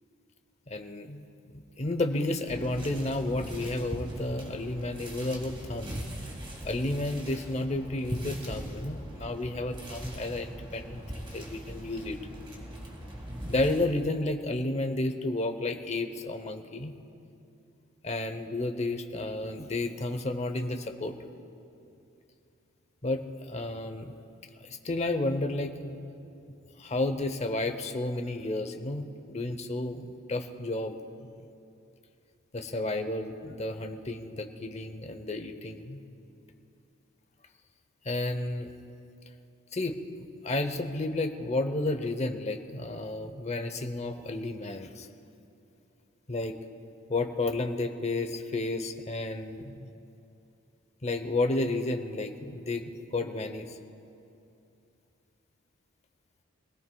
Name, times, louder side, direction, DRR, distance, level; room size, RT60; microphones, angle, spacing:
voice 1, 0.7-1.3 1.5-6.0 6.6-12.2 13.5-16.9 18.0-21.2 23.0-24.1 24.6-26.0 26.8-30.9 31.2-31.3 32.5-36.0 38.0-38.7 39.7-40.0 40.4-45.1 46.3-46.6 47.1-49.9 51.0-53.8, left 2 dB, 30° left, 6 dB, 0.8 m, -32 dB
sound 1, 2.5-13.9, right 1 dB, 25° right, 1.8 m, -40 dB
25.5 x 17.0 x 2.3 m, 2.7 s
head